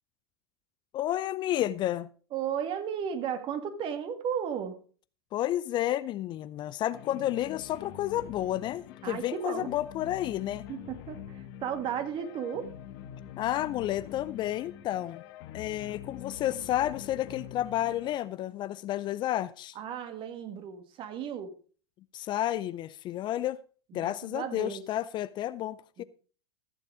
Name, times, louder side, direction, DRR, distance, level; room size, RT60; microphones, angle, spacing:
voice 1, 0.9-2.1 5.3-10.7 13.4-15.2 15.5-19.8 22.1-23.6 23.9-26.0, left 13 dB, 35° left, 0.5 m, -31 dB
voice 2, 2.3-4.8 9.0-9.7 10.7-12.7 19.8-21.5 23.9-24.8 26.0-26.1, right 8 dB, 40° right, 2.0 m, -34 dB
sound 1, 6.9-18.2, left 10 dB, 55° left, 1.5 m, -45 dB
14.5 x 7.2 x 4.8 m
hypercardioid pair, 100°, 14 cm